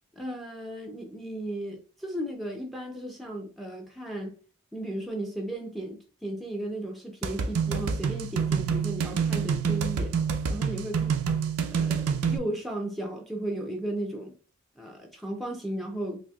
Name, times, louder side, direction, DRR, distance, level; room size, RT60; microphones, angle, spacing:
voice 1, 0.2-4.3 4.7-10.1 10.5-11.1 11.7-14.3 14.8-16.2, right 1 dB, ahead, 0.5 m, -35 dB
sound 1, 7.2-12.4, right 6 dB, 80° right, 0.5 m, -27 dB
4.2 x 2.8 x 2.3 m
head